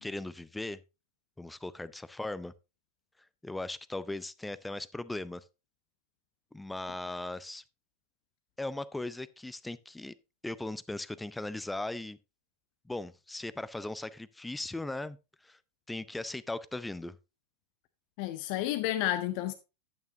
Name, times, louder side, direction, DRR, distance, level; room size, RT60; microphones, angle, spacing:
voice 1, 0.0-0.8 1.4-2.5 3.4-5.4 6.5-7.6 8.6-10.1 10.4-12.2 12.9-15.2 15.4-15.6 15.9-17.2, left 2 dB, 5° left, 0.5 m, -38 dB
voice 2, 18.2-19.5, left 13 dB, 45° left, 0.7 m, -31 dB
10.5 x 9.1 x 2.7 m
figure-of-eight pair, 90°, 0 cm